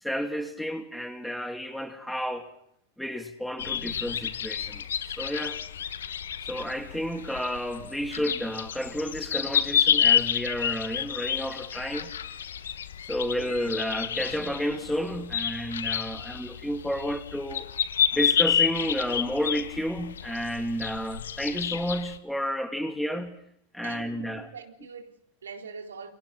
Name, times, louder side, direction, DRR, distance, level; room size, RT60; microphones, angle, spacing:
voice 1, 0.0-2.5 3.0-5.6 6.4-12.1 13.1-17.7 18.1-23.4 23.7-24.5, equal, ahead, 2.8 m, -31 dB
sound 1, 3.6-22.2, left 9 dB, 65° left, 1.3 m, -29 dB
voice 2, 23.8-26.1, right 5 dB, 70° right, 4.1 m, -43 dB
29.5 x 28.5 x 4.2 m
figure-of-eight pair, 90°, 0 cm